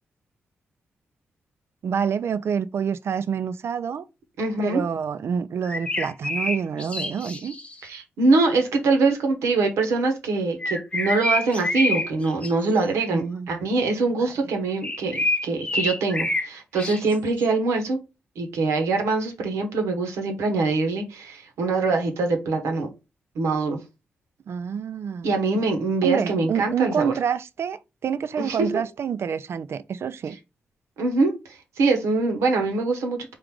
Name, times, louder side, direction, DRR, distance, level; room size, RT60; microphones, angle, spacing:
voice 1, 1.8-4.0 4.6-7.5 13.1-13.6 14.2-14.3 24.5-25.3 26.0-30.4, right 7 dB, 65° right, 0.4 m, -27 dB
voice 2, 4.4-4.8 7.8-18.0 18.4-22.9 23.3-23.8 25.2-27.1 28.4-28.7 31.0-33.3, right 3 dB, 85° right, 1.0 m, -23 dB
sound 1, 5.6-7.8 10.6-12.5 12.8-13.0 14.8-16.5 16.8-17.5, left 2 dB, 25° left, 0.8 m, -27 dB
3.8 x 2.5 x 4.6 m
supercardioid pair, 45°, 5 cm